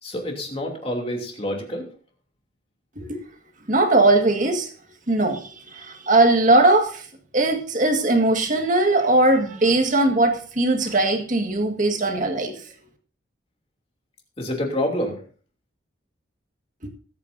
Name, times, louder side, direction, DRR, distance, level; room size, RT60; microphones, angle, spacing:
voice 1, 0.0-1.9 14.4-15.2, left 1 dB, 30° left, 1 dB, 3.0 m, -27 dB
voice 2, 3.7-4.7 5.1-7.0 7.3-12.5, right 2 dB, 40° right, 4 dB, 1.9 m, -19 dB
21.0 x 8.9 x 2.7 m, 0.41 s
head